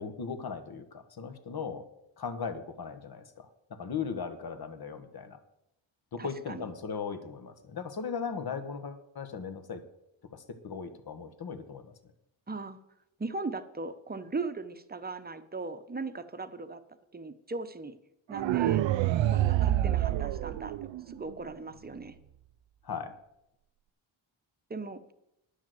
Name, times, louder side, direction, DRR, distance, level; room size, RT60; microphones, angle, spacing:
voice 1, 0.0-1.8 2.2-5.4 6.1-9.8 10.3-11.9 22.8-23.1, left 6 dB, 50° left, 9 dB, 1.4 m, -38 dB
voice 2, 6.2-6.7 12.5-12.8 13.2-16.8 17.1-18.0 18.3-18.9 19.3-22.1 24.7-25.0, right 3 dB, 20° right, 10 dB, 0.9 m, -38 dB
sound 1, 18.3-21.3, right 13 dB, 70° right, 0.6 m, -27 dB
10.5 x 6.6 x 7.7 m, 0.83 s
cardioid pair, 85°, 48 cm